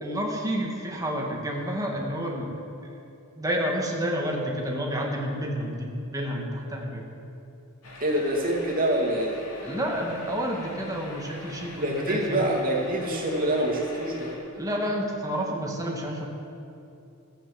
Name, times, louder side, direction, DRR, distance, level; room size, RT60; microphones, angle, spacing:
voice 1, 0.0-2.6 3.4-7.0 9.6-12.4 14.6-16.3, equal, 15° right, -1 dB, 1.8 m, -30 dB
sound 1, 7.8-14.4, left 2 dB, 85° left, 2.7 m, -44 dB
voice 2, 8.0-9.4 11.7-14.3, right 1 dB, 40° right, -2 dB, 2.4 m, -26 dB
15.0 x 8.5 x 7.4 m, 2.8 s
head